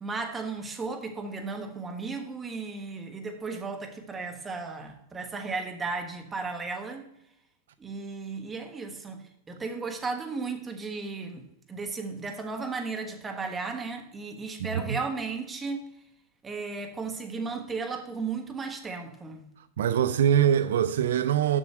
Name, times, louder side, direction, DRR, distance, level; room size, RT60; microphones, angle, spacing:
voice 1, 0.0-7.0 7.8-15.8 16.4-19.4, right 4 dB, 20° right, 1.3 m, -35 dB
voice 2, 14.6-15.0 19.8-21.6, right 9 dB, 75° right, 0.4 m, -23 dB
7.4 x 6.1 x 4.6 m
hypercardioid pair, 105°, 0 cm